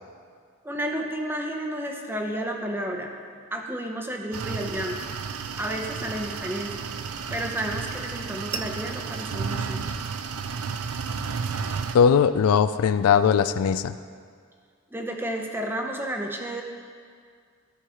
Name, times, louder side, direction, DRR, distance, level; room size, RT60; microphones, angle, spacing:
voice 1, 0.6-3.1 3.5-5.0 5.6-6.9 7.3-9.9 14.9-16.6, right 1 dB, 10° right, 2 dB, 0.7 m, -31 dB
sound 1, 4.3-12.0, right 6 dB, 80° right, 0.5 m, -32 dB
voice 2, 11.9-13.9, left 7 dB, 80° left, 12 dB, 0.3 m, -19 dB
13.0 x 4.7 x 4.9 m, 2.1 s
head